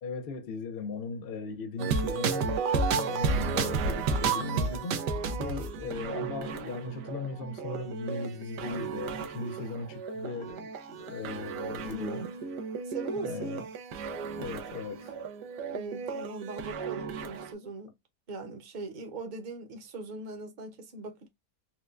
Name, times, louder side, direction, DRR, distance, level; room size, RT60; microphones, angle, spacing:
voice 1, 0.0-5.0 5.4-12.3 13.2-13.7 14.3-15.2 16.8-16.9, left 3 dB, 70° left, 0.5 m, -38 dB
sound 1, 1.8-17.5, right 4 dB, 90° right, 1.3 m, -33 dB
voice 2, 11.8-12.3 12.9-13.7 15.7-17.9 18.3-21.3, right 3 dB, 40° right, 0.8 m, -40 dB
4.4 x 2.2 x 2.4 m
omnidirectional pair, 1.8 m